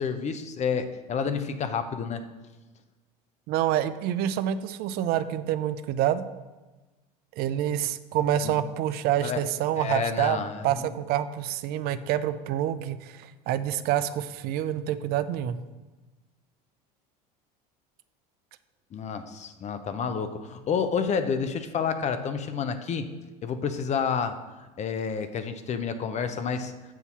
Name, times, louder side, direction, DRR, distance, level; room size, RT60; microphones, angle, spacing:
voice 1, 0.0-2.2 8.4-8.5 9.2-9.4 9.8-10.9 18.9-23.1 23.4-24.4 24.8-26.7, left 6 dB, 35° left, 9 dB, 0.6 m, -29 dB
voice 2, 3.5-6.2 7.4-10.4 10.6-15.6, right 11 dB, 50° right, 13 dB, 0.4 m, -27 dB
7.2 x 2.7 x 5.8 m, 1.2 s
hypercardioid pair, 85°, 20 cm